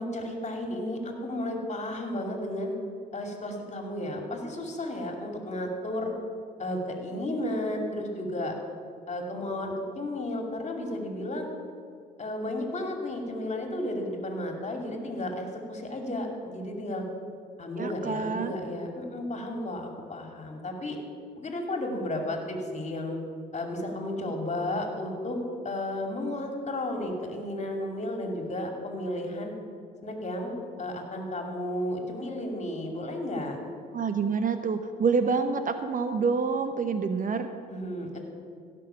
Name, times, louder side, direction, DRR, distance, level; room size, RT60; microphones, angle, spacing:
voice 1, 0.0-2.7 3.1-6.1 6.6-8.5 9.1-11.5 12.2-17.0 17.6-21.0 21.4-23.2 23.5-25.4 25.6-29.5 30.0-33.6 37.7-38.2, left 1 dB, 35° left, 2 dB, 2.5 m, -33 dB
voice 2, 17.8-18.5 33.9-37.5, right 5 dB, 40° right, 9 dB, 0.8 m, -27 dB
16.5 x 6.2 x 5.7 m, 2.2 s
hypercardioid pair, 60°, 21 cm